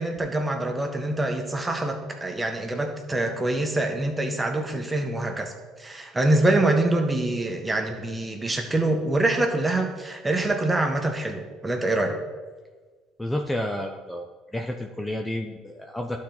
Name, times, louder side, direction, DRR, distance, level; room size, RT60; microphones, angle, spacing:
voice 1, 0.0-5.5 5.8-12.2, right 2 dB, 15° right, 4 dB, 1.3 m, -25 dB
voice 2, 13.2-14.3 14.5-16.2, left 1 dB, 10° left, 3 dB, 0.6 m, -30 dB
11.5 x 4.3 x 3.9 m, 1.4 s
supercardioid pair, 75°, 0 cm